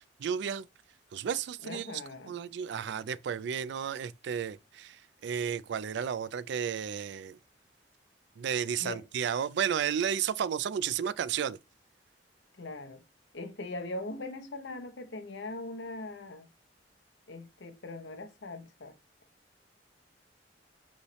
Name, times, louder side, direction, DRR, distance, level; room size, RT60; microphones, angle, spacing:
voice 1, 0.2-0.7 1.1-1.9 2.3-7.4 8.4-11.6, right 8 dB, 65° right, 0.3 m, -32 dB
voice 2, 1.6-2.3 8.8-9.0 12.6-13.0 13.3-16.5 17.3-18.9, left 2 dB, 70° left, 0.8 m, -40 dB
5.3 x 3.2 x 3.0 m
head